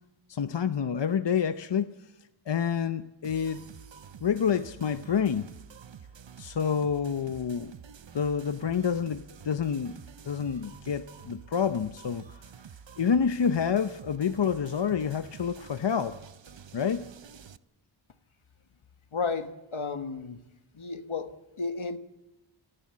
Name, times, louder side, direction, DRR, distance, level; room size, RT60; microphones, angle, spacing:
voice 1, 0.3-2.0 2.5-3.7 4.2-5.5 6.4-7.7 8.1-10.0 10.3-12.4 13.0-16.2 16.7-17.1, left 7 dB, 60° left, 0.7 m, -28 dB
sound 1, 3.2-17.6, right 7 dB, 65° right, 0.8 m, -49 dB
voice 2, 19.1-20.4 20.7-22.0, left 4 dB, 75° left, 1.4 m, -33 dB
29.0 x 11.5 x 8.5 m
wide cardioid pair, 50°, 48 cm